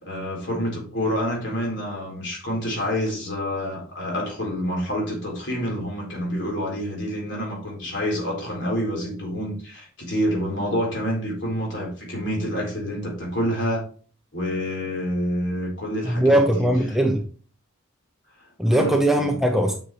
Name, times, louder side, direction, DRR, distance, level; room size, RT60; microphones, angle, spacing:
voice 1, 0.0-13.8 14.3-16.7 18.6-19.3, equal, 60° left, 3.9 m, -28 dB
voice 2, 16.1-17.2 18.6-19.8, right 1 dB, ahead, 0.7 m, -20 dB
9.2 x 6.3 x 3.1 m
head